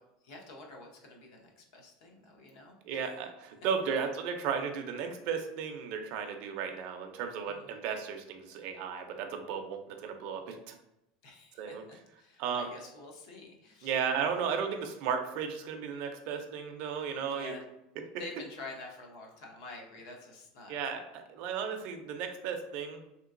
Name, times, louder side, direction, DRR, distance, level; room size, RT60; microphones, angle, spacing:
voice 1, 0.2-3.0 3.8-3.9 7.5-7.7 11.2-13.9 17.2-17.6 18.2-20.8, left 2 dB, 65° left, 1 dB, 0.7 m, -48 dB
voice 2, 2.8-10.7 11.6-11.8 12.4-12.7 13.8-17.5 20.7-23.0, right 6 dB, 45° right, 5 dB, 0.4 m, -34 dB
3.2 x 2.9 x 2.5 m, 0.87 s
supercardioid pair, 180°, 3 cm